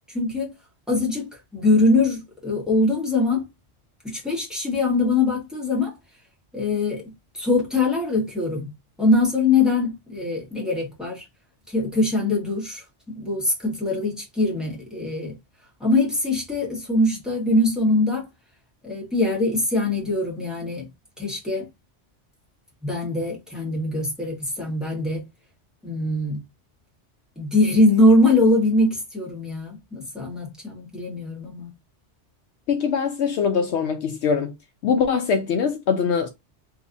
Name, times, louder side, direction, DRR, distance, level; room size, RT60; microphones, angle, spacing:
voice 1, 0.1-0.5 0.9-3.4 4.0-5.9 6.5-8.7 9.0-11.2 11.7-15.3 15.8-18.3 18.8-20.9 21.2-21.7 22.8-25.3 25.8-26.4 27.4-31.7, left 2 dB, ahead, 1.4 m, -22 dB
voice 2, 32.7-34.5 34.8-36.3, left 6 dB, 70° left, 0.8 m, -22 dB
3.1 x 2.8 x 2.5 m
omnidirectional pair, 1.2 m